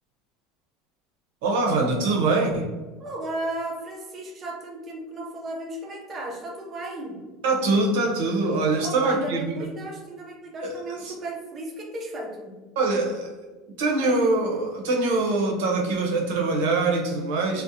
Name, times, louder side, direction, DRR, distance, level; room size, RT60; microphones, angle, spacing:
voice 1, 1.4-2.7 7.4-9.6 10.6-10.7 11.1-11.2 12.8-13.3 13.8-17.6, right 3 dB, 80° right, 1 dB, 0.6 m, -23 dB
voice 2, 3.0-7.3 8.8-12.6 17.5-17.6, right 1 dB, 20° right, 0 dB, 0.4 m, -35 dB
2.6 x 2.1 x 2.5 m, 1.2 s
cardioid pair, 170°, 0 cm